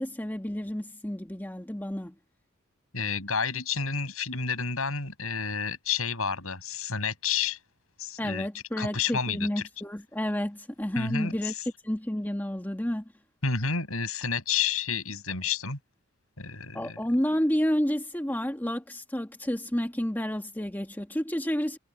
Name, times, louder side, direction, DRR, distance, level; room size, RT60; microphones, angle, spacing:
voice 1, 0.0-2.1 8.2-11.5 11.8-13.0 16.7-21.8, equal, 10° left, 1.6 m, -30 dB
voice 2, 2.9-7.6 8.0-8.5 8.8-9.6 11.0-11.6 13.4-15.8 16.4-17.0, left 6 dB, 75° left, 8.0 m, -30 dB
head